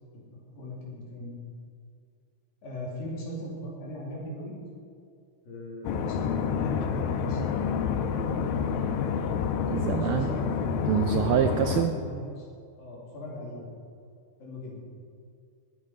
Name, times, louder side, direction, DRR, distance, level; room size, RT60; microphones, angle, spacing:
voice 1, 0.1-1.3 2.6-4.5 5.5-7.4 10.0-10.9 11.6-12.5 12.8-13.7 14.4-14.8, equal, 70° left, -4 dB, 4.6 m, -39 dB
sound 1, 5.8-11.8, left 7 dB, 85° left, 2.6 m, -28 dB
voice 2, 9.7-10.3 10.9-11.9, right 9 dB, 85° right, 7 dB, 1.9 m, -25 dB
20.5 x 8.6 x 4.9 m, 2.4 s
omnidirectional pair, 4.3 m